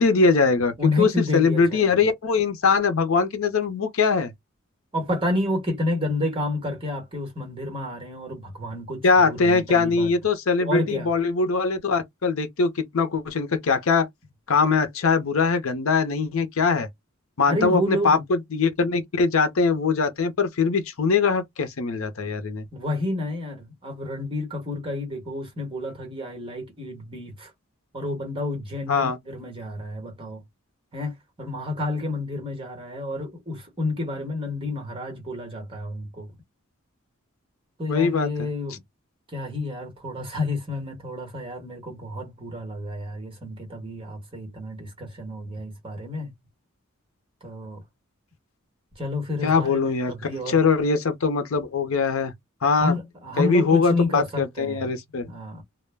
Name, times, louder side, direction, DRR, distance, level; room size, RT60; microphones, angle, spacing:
voice 1, 0.0-4.3 9.0-14.1 14.5-16.9 17.4-22.7 28.9-29.2 37.9-38.5 49.4-50.1 50.5-52.3 52.6-53.0 53.4-55.3, left 4 dB, 70° left, 0.6 m, -22 dB
voice 2, 0.8-2.0 4.9-10.1 10.6-11.1 17.5-18.2 22.7-27.5 27.9-30.4 30.9-36.4 37.8-38.8 39.3-46.3 47.4-47.8 49.0-50.6 52.8-54.9 55.3-55.6, left 2 dB, 25° right, 1.1 m, -30 dB
2.1 x 2.1 x 3.2 m
head